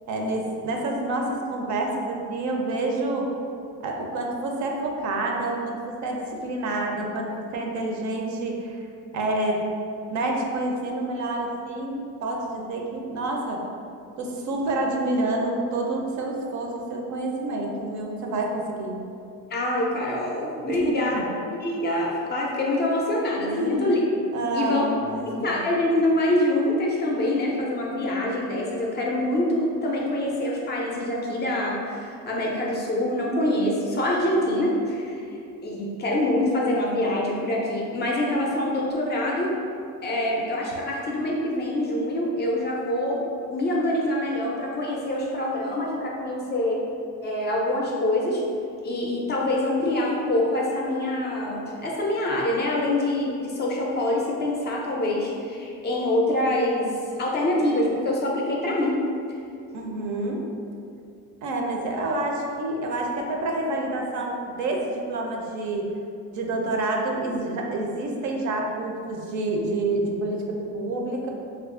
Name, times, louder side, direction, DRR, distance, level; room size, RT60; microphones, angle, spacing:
voice 1, 0.1-3.3 3.8-8.9 9.1-9.6 10.1-13.6 14.2-19.0 20.7-21.3 23.5-23.9 24.3-25.6 59.7-60.5 61.4-65.9 66.3-71.3, right 2 dB, 55° right, 1 dB, 0.5 m, -28 dB
voice 2, 19.5-21.2 21.6-24.0 24.5-24.9 25.3-35.2 35.6-39.6 40.0-43.2 43.5-46.8 47.2-48.4 48.8-56.9 57.2-59.0, left 1 dB, 30° left, -2 dB, 0.4 m, -25 dB
2.8 x 2.4 x 3.6 m, 2.5 s
cardioid pair, 140°, 35 cm